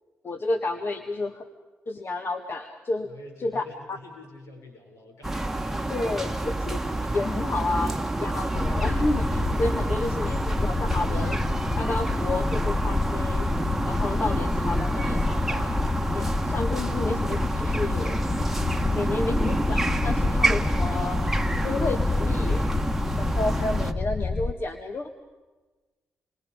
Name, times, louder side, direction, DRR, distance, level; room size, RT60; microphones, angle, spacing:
voice 1, 0.2-1.5 1.9-3.1 3.4-3.6 3.9-4.0 5.9-11.4 11.8-13.5 13.8-15.8 16.1-18.2 19.0-21.2 21.6-22.7 23.2-25.1, left 2 dB, 50° left, 6 dB, 1.7 m, -31 dB
voice 2, 3.0-5.4, left 2 dB, 75° left, 2 dB, 7.2 m, -47 dB
sound 1, 5.2-23.9, right 2 dB, 5° right, 1.6 m, -28 dB
sound 2, 8.5-24.5, left 3 dB, 25° left, 0.9 m, -28 dB
28.5 x 23.5 x 5.3 m, 1.2 s
cardioid pair, 65°, 5 cm